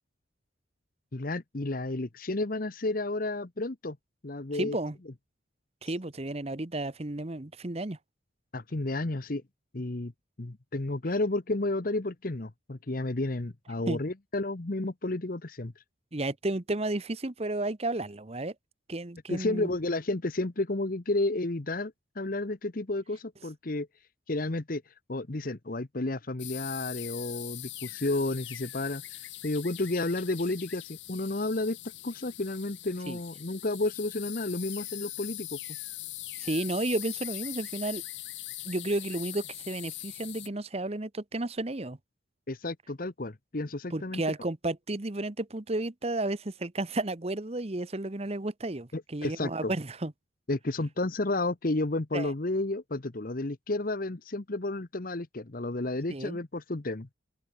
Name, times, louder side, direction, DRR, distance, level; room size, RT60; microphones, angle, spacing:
voice 1, 1.1-4.0 4.2-4.8 8.5-9.4 9.7-10.1 10.4-15.7 19.3-23.9 24.3-24.8 25.1-29.2 29.4-31.8 32.0-35.6 42.5-44.3 48.9-49.7 50.5-57.1, left 2 dB, 45° left, 1.0 m, -31 dB
voice 2, 4.5-5.0 5.8-8.0 13.9-14.0 16.1-18.5 18.9-19.7 33.1-33.2 36.4-38.0 38.6-42.0 43.9-50.1 52.1-52.3 56.1-56.4, right 2 dB, 30° right, 1.0 m, -32 dB
sound 1, 26.4-40.5, left 16 dB, 65° left, 2.5 m, -41 dB
open air
head